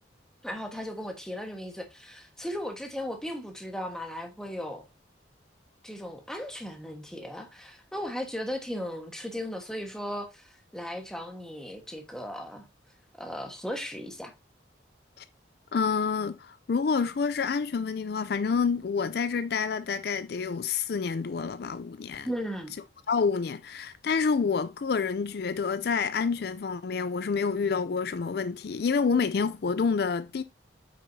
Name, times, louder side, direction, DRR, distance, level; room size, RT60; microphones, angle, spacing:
voice 1, 0.4-4.8 5.8-12.7 13.2-14.3 22.2-22.7, equal, 5° left, 1.3 m, -36 dB
voice 2, 15.7-22.3 23.1-30.4, left 5 dB, 55° left, 0.4 m, -28 dB
8.6 x 6.0 x 2.7 m
head